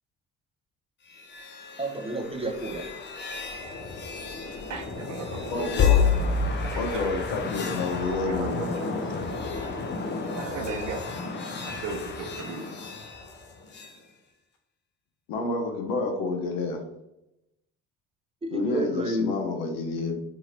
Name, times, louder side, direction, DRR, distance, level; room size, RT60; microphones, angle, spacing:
sound 1, 1.1-14.0, left 5 dB, 30° left, 0.6 m, -30 dB
voice 1, 1.8-2.9 18.4-19.4, right 1 dB, 15° right, 3 dB, 0.5 m, -30 dB
voice 2, 4.7-5.9 6.5-7.1 8.1-9.5 10.3-11.1 11.6-12.9 13.2-13.3, right 4 dB, 50° right, 3 dB, 0.7 m, -36 dB
voice 3, 5.5-6.1 6.8-8.6 15.3-16.8 18.5-20.2, left 3 dB, 65° left, 4 dB, 0.7 m, -29 dB
2.8 x 2.6 x 2.9 m, 0.88 s
hypercardioid pair, 55°, 37 cm